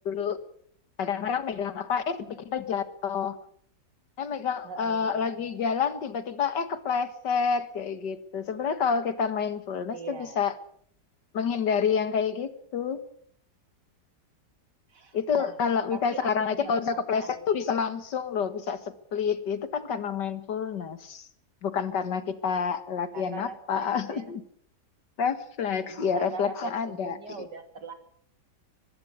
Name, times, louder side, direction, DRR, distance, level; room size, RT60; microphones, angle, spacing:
voice 1, 0.1-0.4 1.0-3.4 4.2-10.5 11.3-13.0 15.1-18.8 19.1-21.3 21.6-24.4 25.2-27.2, left 6 dB, 80° left, 12 dB, 2.2 m, -28 dB
voice 2, 4.6-5.5 9.9-10.4 14.9-15.6 15.9-16.3 16.6-17.6 23.1-24.3 25.8-27.9, right 5 dB, 80° right, 8 dB, 3.2 m, -42 dB
21.0 x 16.0 x 8.1 m, 0.62 s
omnidirectional pair, 1.8 m